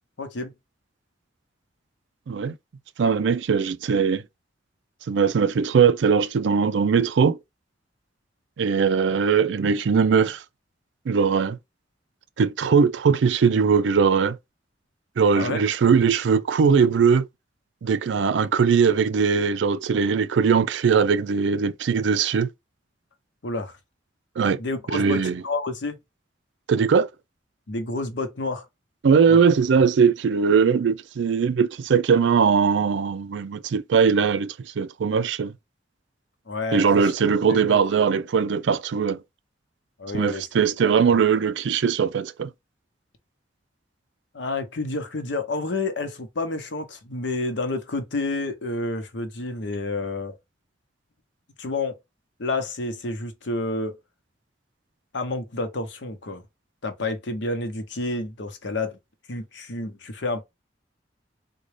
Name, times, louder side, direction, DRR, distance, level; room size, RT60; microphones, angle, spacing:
voice 1, 0.2-0.5 15.3-15.6 23.4-23.8 24.6-26.0 27.7-28.6 29.3-29.4 36.5-37.1 37.5-37.8 40.0-40.4 41.1-41.2 44.3-50.4 51.6-51.9 52.4-54.0 55.1-56.4 56.8-59.0 59.3-60.4, left 2 dB, 75° left, 0.8 m, -29 dB
voice 2, 3.0-4.2 5.1-7.4 8.6-10.4 11.1-11.6 12.4-14.4 15.2-17.3 17.8-22.5 24.4-24.6 24.9-25.4 26.7-27.1 29.0-35.5 36.7-39.2 40.1-42.5, right 6 dB, 75° right, 0.4 m, -20 dB
3.8 x 2.3 x 3.2 m
head